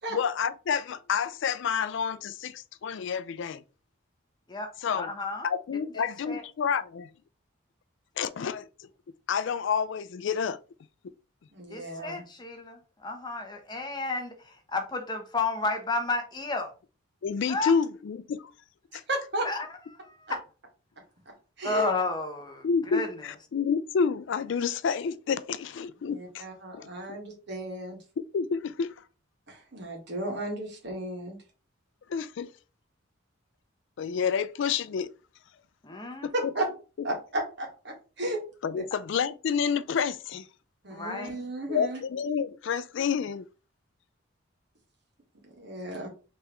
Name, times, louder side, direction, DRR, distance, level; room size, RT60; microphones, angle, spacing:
voice 1, 0.1-3.6 4.8-5.1 5.4-7.1 8.2-8.9 9.3-10.6 17.2-18.5 18.9-19.0 22.6-26.4 26.7-26.9 28.3-29.0 32.1-32.5 34.0-35.1 36.2-36.3 38.6-40.5 41.7-43.5, left 6 dB, 60° left, 0.4 m, -29 dB
voice 2, 5.0-5.5 6.3-6.4 11.7-16.7 17.5-17.7 19.4-19.6 21.6-22.6 22.9-23.1 35.8-36.3 40.9-41.3, left 3 dB, 20° left, 0.8 m, -31 dB
voice 3, 11.5-12.2 18.9-19.5 21.2-21.9 26.1-28.0 29.5-31.4 36.3-36.7 37.0-38.4 38.7-38.8 40.8-42.0 45.4-46.1, right 1 dB, 55° right, 1.7 m, -34 dB
5.3 x 3.3 x 3.0 m
head